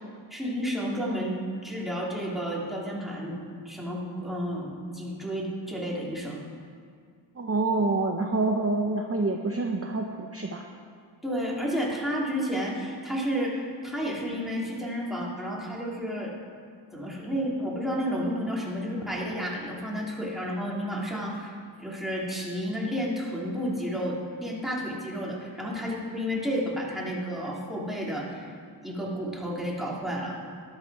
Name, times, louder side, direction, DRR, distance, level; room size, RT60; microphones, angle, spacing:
voice 1, 0.3-3.4 3.6-6.4 11.2-16.3 16.9-21.5 21.8-28.5 28.8-30.4, equal, ahead, -4 dB, 2.8 m, -31 dB
voice 2, 7.4-10.6, right 3 dB, 30° right, 2 dB, 0.9 m, -27 dB
12.5 x 10.5 x 4.8 m, 2.2 s
wide cardioid pair, 60°, 47 cm